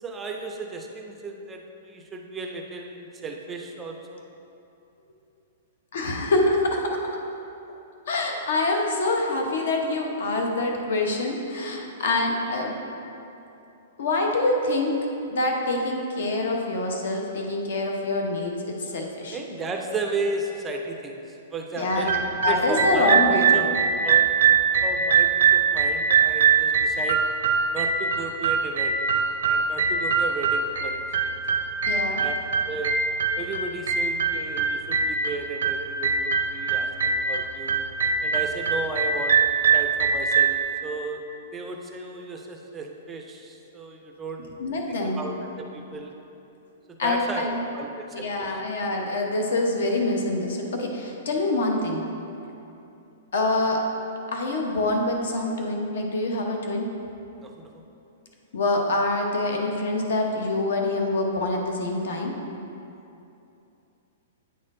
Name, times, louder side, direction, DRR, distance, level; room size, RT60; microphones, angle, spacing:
voice 1, 0.0-4.2 19.3-21.2 21.5-22.1 22.5-23.6 24.0-24.6 24.8-27.2 27.7-29.0 29.4-31.4 32.2-32.3 32.7-32.9 33.4-37.8 38.2-39.4 39.7-41.2 41.5-44.5 45.2-46.1 47.0-48.5 57.4-57.8, right 3 dB, 10° right, 2 dB, 0.4 m, -34 dB
voice 2, 5.9-7.0 8.1-12.7 14.0-14.9 15.3-19.4 21.8-23.7 31.9-32.2 44.6-45.3 47.0-47.7 48.1-52.0 53.3-53.8 54.3-56.9 58.5-62.3, left 2 dB, 65° left, 1 dB, 0.9 m, -25 dB
sound 1, 21.9-40.6, right 6 dB, 90° right, 0.5 m, -23 dB
9.2 x 4.3 x 3.7 m, 2.8 s
hypercardioid pair, 180°, 0 cm